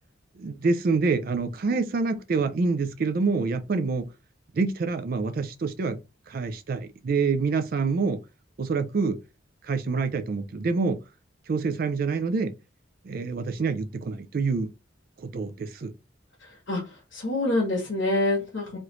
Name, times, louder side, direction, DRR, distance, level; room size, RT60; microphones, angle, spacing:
voice 1, 0.4-4.1 4.5-6.0 6.3-8.2 8.6-9.2 9.6-11.0 11.5-12.6 13.0-14.7 15.2-15.9, right 4 dB, 50° right, 0.4 m, -26 dB
voice 2, 16.4-18.8, left 2 dB, 80° left, 1.2 m, -27 dB
3.1 x 2.5 x 3.0 m
head